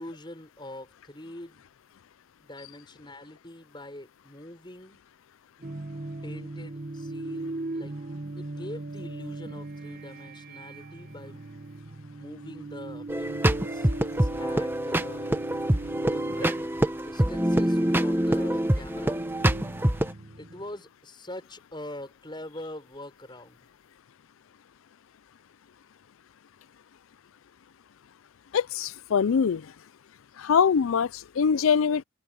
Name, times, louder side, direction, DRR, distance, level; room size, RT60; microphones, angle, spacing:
voice 1, 0.0-1.7 2.4-5.0 6.2-8.0 8.4-11.4 12.2-15.5 16.0-19.2 20.4-23.6, left 1 dB, 20° left, 6.8 m, -43 dB
sound 1, 5.6-20.8, right 2 dB, 45° right, 1.2 m, -39 dB
sound 2, 13.1-20.1, right 1 dB, 10° right, 1.0 m, -25 dB
voice 2, 28.5-29.7 30.4-32.0, left 6 dB, 80° left, 0.4 m, -23 dB
head